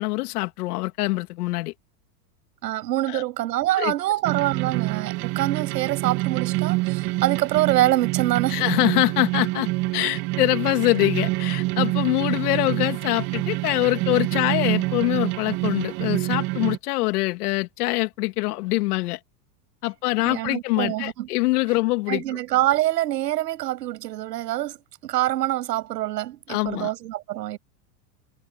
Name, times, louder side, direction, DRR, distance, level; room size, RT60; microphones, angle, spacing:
voice 1, 0.0-1.7 3.1-3.2 3.8-3.9 8.5-9.7 9.9-19.2 19.8-22.4 26.5-26.9, left 20 dB, 70° left, 2.6 m, -24 dB
voice 2, 2.6-8.6 20.2-21.3 22.1-27.6, right 15 dB, 80° right, 6.7 m, -25 dB
sound 1, 4.2-16.8, right 22 dB, 45° right, 2.0 m, -26 dB
supercardioid pair, 140°, 48 cm